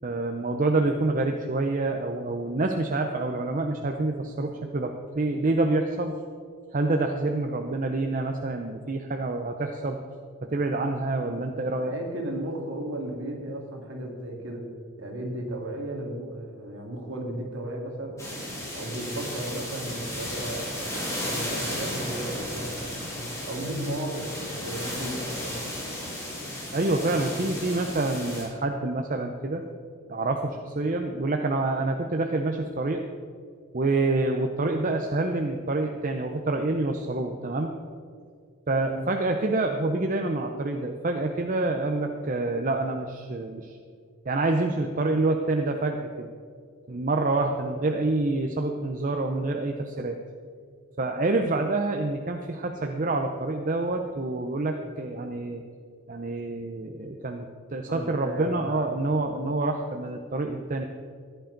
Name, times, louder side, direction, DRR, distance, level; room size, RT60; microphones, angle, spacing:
voice 1, 0.0-6.2 6.7-10.0 10.4-11.9 26.7-29.6 30.1-33.0 33.7-37.7 38.7-43.8 44.3-46.3 46.9-50.2 51.0-55.6 56.1-60.8, right 2 dB, 40° right, 4 dB, 0.6 m, -27 dB
voice 2, 11.8-14.6 15.0-18.3 18.7-21.0 21.2-22.9 23.4-25.5 38.8-39.0 57.9-58.9, right 1 dB, 60° right, 0 dB, 2.2 m, -35 dB
sound 1, 18.2-28.4, left 1 dB, 15° left, 2.8 m, -34 dB
14.5 x 10.5 x 3.9 m, 2.1 s
head